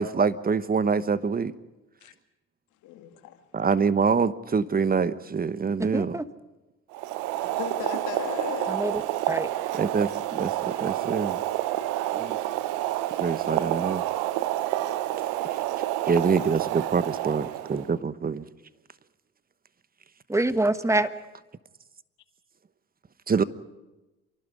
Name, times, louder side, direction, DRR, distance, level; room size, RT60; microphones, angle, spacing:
voice 1, 0.0-1.5 3.5-6.2 9.8-11.4 12.1-12.4 13.2-14.0 16.1-18.4 23.3-23.4, right 5 dB, 30° right, 15 dB, 1.1 m, -25 dB
voice 2, 2.8-3.5 7.5-9.0, left 10 dB, 75° left, 7 dB, 2.2 m, -36 dB
voice 3, 5.8-6.3 8.7-9.0 9.3-9.5 20.3-21.1, right 2 dB, 10° right, 12 dB, 1.4 m, -25 dB
Boiling, 6.9-17.9, right 14 dB, 80° right, 0.9 m, -29 dB
27.5 x 12.0 x 9.5 m, 1.1 s
supercardioid pair, 60°, 30 cm